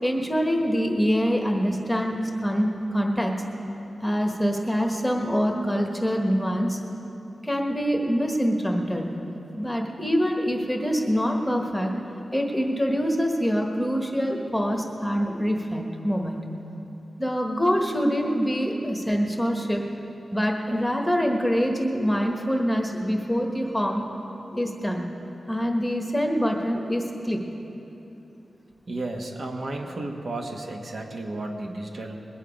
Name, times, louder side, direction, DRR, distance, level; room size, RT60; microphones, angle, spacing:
voice 1, 0.0-3.3 4.0-6.8 7.4-9.2 9.6-11.9 12.3-16.4 17.2-19.8 20.3-24.0 24.5-25.1 25.5-27.4, equal, ahead, 1 dB, 1.3 m, -25 dB
voice 2, 28.9-32.3, right 2 dB, 55° right, 2 dB, 1.2 m, -33 dB
21.0 x 9.2 x 5.1 m, 3.0 s
wide cardioid pair, 105°, 0 cm